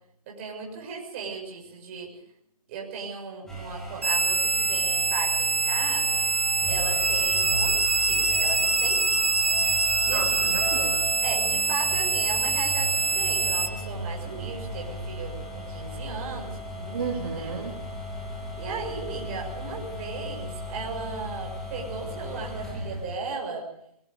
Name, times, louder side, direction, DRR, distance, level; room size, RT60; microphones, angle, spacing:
voice 1, 0.3-2.1 2.7-6.3 6.7-9.4 10.1-10.4 11.2-17.0 17.3-17.5 18.6-23.6, right 4 dB, 20° right, 0 dB, 6.5 m, -37 dB
sound 1, 3.5-23.1, equal, ahead, 2.8 m, -36 dB
sound 2, 4.0-13.7, right 3 dB, 85° right, 2.9 m, -24 dB
voice 2, 10.0-11.2 16.9-17.9, right 5 dB, 40° right, 0 dB, 3.8 m, -33 dB
23.0 x 23.0 x 5.2 m, 0.71 s
figure-of-eight pair, 160°, 20 cm